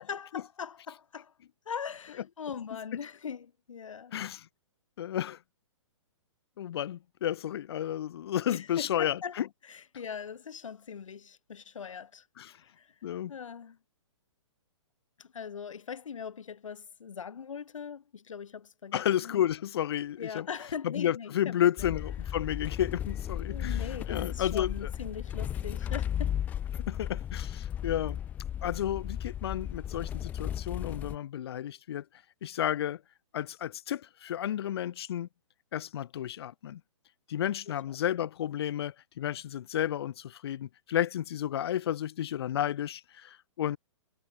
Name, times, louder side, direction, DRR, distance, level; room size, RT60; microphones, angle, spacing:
voice 1, 0.0-1.3 1.7-4.2 8.5-12.2 12.6-12.9 13.3-13.8 15.2-19.4 20.2-21.9 23.5-26.3 37.7-37.8 38.2-38.3, left 7 dB, 80° left, 3.4 m, -41 dB
voice 2, 5.0-5.4 6.6-9.5 12.4-12.5 13.0-13.3 18.9-20.5 20.8-23.8 24.1-24.9 26.9-28.2 28.6-32.0 32.4-33.0 33.3-35.3 35.7-36.8 37.3-43.8, left 11 dB, 50° left, 1.1 m, -32 dB
sound 1, 21.8-31.2, left 10 dB, 10° left, 0.5 m, -35 dB
hypercardioid pair, 160°, 16 cm